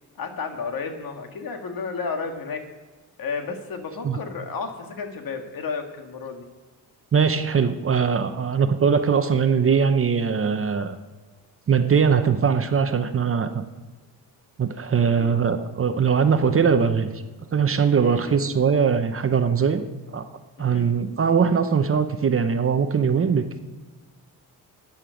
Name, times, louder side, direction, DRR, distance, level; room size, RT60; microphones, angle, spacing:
voice 1, 0.2-2.7 3.2-6.4 15.1-15.3 18.0-18.7 20.6-21.1, left 5 dB, 60° left, 5 dB, 1.7 m, -32 dB
voice 2, 7.1-10.9 11.7-13.6 14.6-17.1 17.5-19.8 20.1-20.2 20.6-23.6, right 6 dB, 35° right, 9 dB, 0.8 m, -21 dB
13.0 x 9.5 x 5.1 m, 1.3 s
cardioid pair, 125°, 40 cm